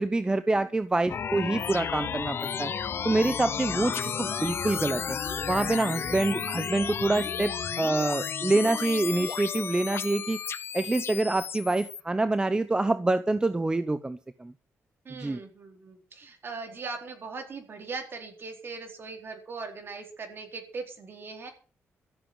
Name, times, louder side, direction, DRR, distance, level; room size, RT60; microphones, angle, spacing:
voice 1, 0.0-2.7 3.0-5.2 5.5-10.4 10.7-14.5 15.2-15.4, right 2 dB, 15° right, 12 dB, 0.8 m, -26 dB
sound 1, 1.1-12.0, left 7 dB, 50° left, 0.9 m, -33 dB
voice 2, 15.0-21.5, right 4 dB, 50° right, 4 dB, 4.3 m, -40 dB
14.0 x 7.6 x 8.9 m, 0.39 s
cardioid pair, 105°, 5 cm